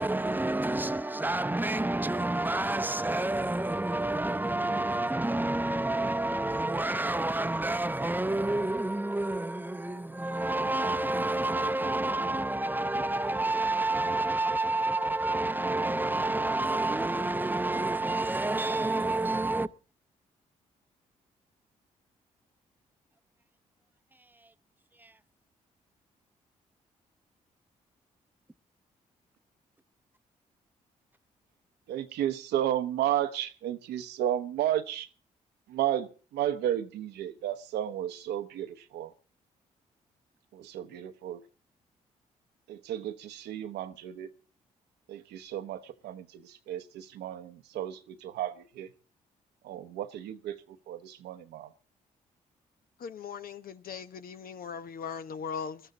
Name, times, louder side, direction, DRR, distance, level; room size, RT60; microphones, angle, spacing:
voice 1, 0.0-19.7 25.0-25.1, right 2 dB, 10° right, 0.8 m, -29 dB
voice 2, 31.9-35.1 35.7-39.1 40.5-41.4 42.7-44.3 45.1-48.9 49.6-51.7, right 11 dB, 75° right, 1.0 m, -33 dB
voice 3, 53.0-55.8, left 6 dB, 55° left, 1.0 m, -39 dB
21.0 x 13.0 x 4.0 m
hypercardioid pair, 45°, 17 cm